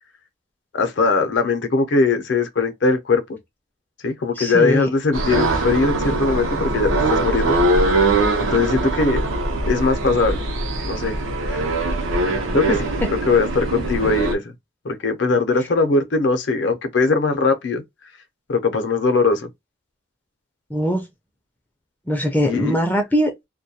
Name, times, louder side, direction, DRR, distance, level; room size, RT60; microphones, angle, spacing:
voice 1, 0.7-3.2 4.0-7.6 8.4-9.2 9.7-10.4 10.8-11.2 11.5-11.7 12.2-12.9 13.3-14.4 14.8-17.8 18.5-19.5 22.4-22.8, left 3 dB, 65° left, 0.6 m, -20 dB
voice 2, 4.4-4.9 13.0-13.1 20.7-21.1 22.1-23.3, equal, 10° left, 0.4 m, -21 dB
sound 1, 5.1-14.3, right 2 dB, 85° right, 0.6 m, -22 dB
2.2 x 2.2 x 2.7 m
head